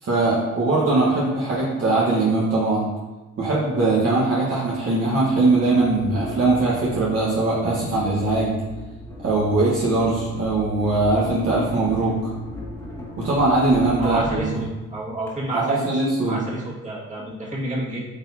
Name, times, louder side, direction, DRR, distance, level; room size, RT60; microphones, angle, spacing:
voice 1, 0.0-2.9 3.4-8.6 9.2-12.2 13.2-14.6 15.5-16.4, right 2 dB, 50° right, -6 dB, 1.4 m, -21 dB
sound 1, 3.6-3.7 4.7-15.3, equal, 10° left, 1.7 m, -37 dB
voice 2, 14.0-18.1, right 1 dB, 25° right, -6 dB, 2.0 m, -30 dB
8.6 x 4.2 x 2.8 m, 1.2 s
cardioid pair, 90°, 30 cm